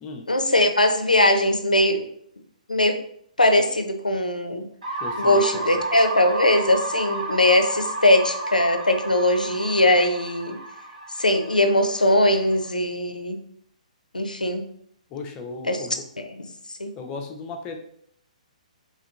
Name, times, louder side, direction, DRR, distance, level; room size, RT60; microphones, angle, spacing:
voice 1, 0.3-2.1 2.7-3.0 3.4-4.7 5.2-10.6 11.2-13.4 14.1-14.6 15.7-15.8 16.2-16.3 16.8-16.9, left 1 dB, 90° left, 6 dB, 0.4 m, -20 dB
sound 1, 4.8-12.7, right 2 dB, 65° right, 0.8 m, -32 dB
voice 2, 5.0-5.8 15.1-16.1 17.0-17.8, left 4 dB, 20° left, 4 dB, 0.4 m, -36 dB
3.0 x 2.7 x 2.3 m, 0.67 s
figure-of-eight pair, 125°, 4 cm